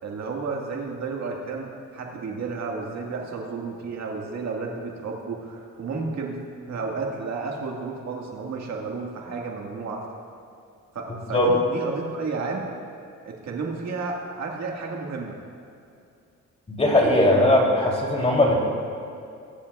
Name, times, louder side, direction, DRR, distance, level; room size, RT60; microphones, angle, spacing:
voice 1, 0.0-6.4 6.7-10.0 10.9-12.7 13.3-15.4, right 4 dB, 60° right, -1 dB, 1.8 m, -32 dB
voice 2, 16.7-18.6, left 1 dB, 20° left, -2 dB, 2.9 m, -19 dB
20.5 x 10.5 x 2.4 m, 2.5 s
cardioid pair, 90°, 30 cm